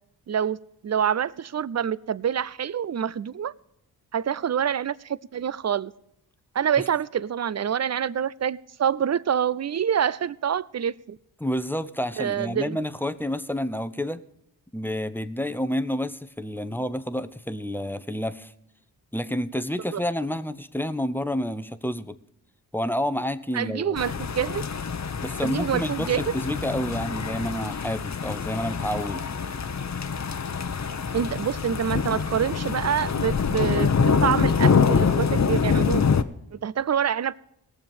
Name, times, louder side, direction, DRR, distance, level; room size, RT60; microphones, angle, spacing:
voice 1, 0.3-3.5 4.1-5.9 6.5-11.2 12.2-12.8 19.9-20.0 23.5-24.7 25.4-26.2 31.1-36.0 36.5-37.4, right 8 dB, 35° right, 20 dB, 0.6 m, -26 dB
voice 2, 11.4-14.2 14.7-18.5 19.1-22.2 22.7-23.9 25.2-29.2, left 1 dB, 5° left, 13 dB, 0.8 m, -29 dB
sound 1, 24.0-36.2, left 5 dB, 40° left, 0.9 m, -25 dB
18.5 x 7.1 x 5.3 m, 0.82 s
supercardioid pair, 40°, 44 cm